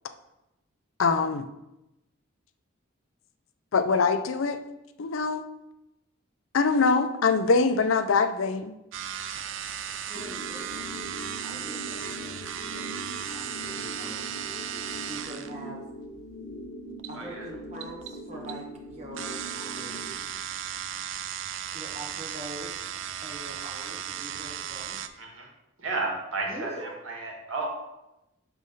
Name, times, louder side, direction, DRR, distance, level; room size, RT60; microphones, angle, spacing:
voice 1, 1.0-1.5 3.7-4.6 5.0-5.4 6.5-8.7, left 4 dB, 75° left, 10 dB, 0.5 m, -23 dB
sound 1, 8.9-25.1, right 9 dB, 65° right, 0.4 m, -36 dB
sound 2, 10.1-20.1, equal, 35° left, 0.7 m, -41 dB
voice 2, 10.1-10.9 11.4-14.4 15.0-15.8 17.1-20.1 21.7-22.9 23.2-25.1 26.4-27.0, right 1 dB, 35° right, -2 dB, 1.4 m, -43 dB
voice 3, 25.8-27.7, right 3 dB, 80° right, -1 dB, 1.7 m, -32 dB
6.4 x 3.4 x 5.3 m, 0.92 s
head